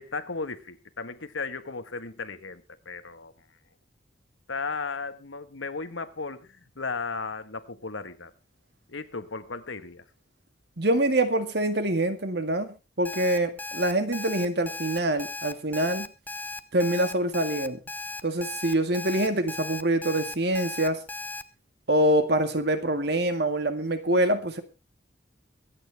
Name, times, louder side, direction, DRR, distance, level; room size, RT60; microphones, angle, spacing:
voice 1, 0.0-3.3 4.5-8.3 8.9-10.0, left 4 dB, 90° left, 10 dB, 1.5 m, -35 dB
voice 2, 10.8-16.1 16.7-17.8 18.2-21.0 21.9-24.6, right 1 dB, 60° right, 8 dB, 2.0 m, -25 dB
Alarm, 13.0-21.4, left 3 dB, 10° left, 0.8 m, -36 dB
24.0 x 9.1 x 3.4 m, 0.29 s
head